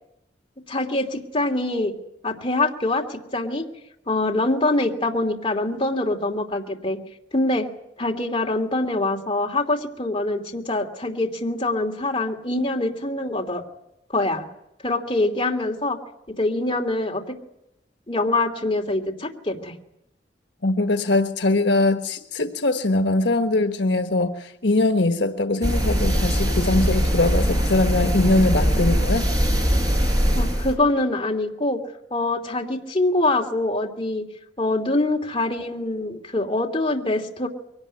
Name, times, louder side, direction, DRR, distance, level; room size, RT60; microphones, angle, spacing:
voice 1, 0.7-1.9 2.2-3.7 4.1-7.0 7.3-7.7 8.0-13.6 14.1-14.4 14.8-16.0 16.4-17.2 18.1-19.7 30.3-31.8 32.1-34.2 34.6-37.5, left 2 dB, 30° left, 2.9 m, -24 dB
voice 2, 20.6-29.2, left 2 dB, 75° left, 1.4 m, -21 dB
sound 1, 25.6-30.7, equal, 20° right, 5.4 m, -21 dB
23.5 x 18.5 x 9.7 m
head